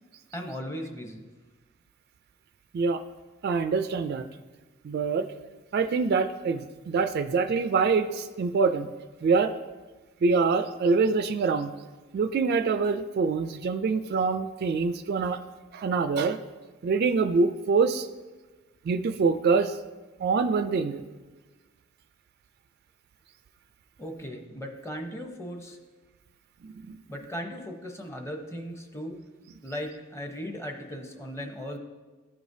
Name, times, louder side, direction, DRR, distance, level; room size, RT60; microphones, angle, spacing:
voice 1, 0.3-1.2 24.0-25.8 27.1-29.2 29.6-31.8, equal, 15° left, 3 dB, 0.7 m, -37 dB
voice 2, 3.4-4.3 4.8-5.3 5.7-8.9 9.2-9.5 10.2-11.7 12.1-15.4 15.7-16.4 16.8-18.1 18.9-19.8 20.2-21.0 26.8-26.9, right 4 dB, 50° right, 10 dB, 0.3 m, -25 dB
13.5 x 4.9 x 2.7 m, 1.3 s
head